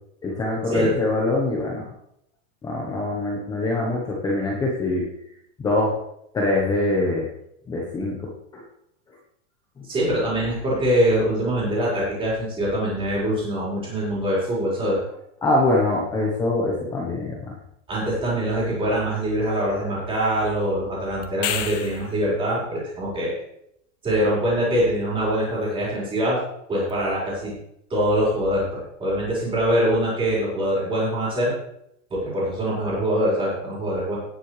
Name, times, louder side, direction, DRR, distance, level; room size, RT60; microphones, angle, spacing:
voice 1, 0.2-1.9 2.6-5.1 5.6-6.0 6.3-7.3 7.7-8.6 9.8-9.9 15.4-17.5, left 2 dB, 10° left, -2 dB, 1.0 m, -24 dB
voice 2, 9.8-15.0 17.9-23.3 24.0-26.4 26.7-27.5 27.9-31.5 32.1-34.2, equal, 15° right, -6 dB, 4.8 m, -23 dB
sound 1, 21.2-22.2 26.9-27.0, left 10 dB, 65° left, 1.3 m, -29 dB
17.5 x 7.5 x 3.3 m, 0.75 s
supercardioid pair, 175°, 40 cm